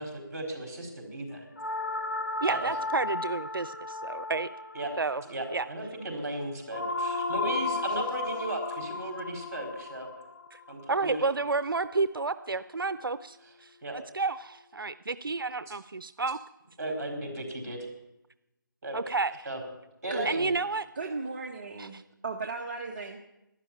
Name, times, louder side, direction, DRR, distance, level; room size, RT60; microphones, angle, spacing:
voice 1, 0.0-1.4 2.5-2.7 4.7-4.9 5.3-10.1 10.7-11.2 13.8-13.9 16.8-17.9 18.8-19.0 19.5-19.6 20.0-20.5, right 1 dB, 45° right, 2 dB, 4.3 m, -35 dB
sound 1, 1.6-11.8, left 3 dB, 55° left, 1.5 m, -35 dB
voice 2, 2.4-4.5 5.0-5.2 5.5-5.7 10.5-10.6 10.9-16.4 18.9-19.5 20.2-20.9 21.8-22.0, right 3 dB, 85° right, 14 dB, 0.5 m, -31 dB
voice 3, 21.0-22.0 22.2-23.2, right 3 dB, 30° right, 2 dB, 0.9 m, -36 dB
12.5 x 10.5 x 8.7 m, 0.90 s
figure-of-eight pair, 165°, 11 cm